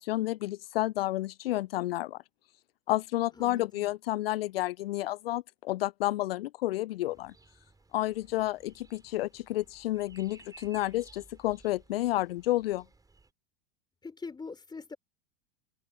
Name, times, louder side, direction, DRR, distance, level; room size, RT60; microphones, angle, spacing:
voice 1, 0.0-2.2 2.9-7.3 7.9-12.8, left 16 dB, 70° left, 0.4 m, -30 dB
voice 2, 3.4-3.9 14.0-15.0, left 4 dB, 15° left, 3.9 m, -43 dB
sound 1, 7.1-13.3, right 3 dB, 10° right, 6.2 m, -58 dB
hypercardioid pair, 90°, 30 cm